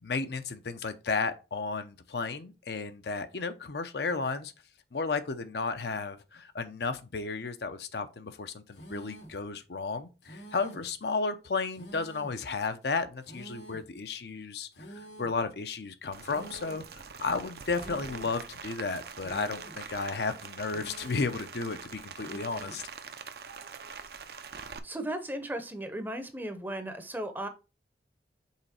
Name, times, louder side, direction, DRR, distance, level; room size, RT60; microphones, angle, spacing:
voice 1, 0.0-4.5 4.9-14.7 15.2-22.8, left 4 dB, 65° left, 0.6 m, -33 dB
sound 1, 8.7-9.4 10.2-10.9 11.7-12.4 13.2-13.9 14.7-15.4 16.2-16.9 17.7-18.4 19.2-19.9 20.7-21.4 22.2-22.9, right 1 dB, 85° left, 1.4 m, -48 dB
Rain, 16.1-24.8, right 5 dB, 60° right, 0.6 m, -44 dB
voice 2, 24.5-27.5, right 1 dB, 10° right, 0.7 m, -36 dB
5.7 x 4.0 x 4.2 m
head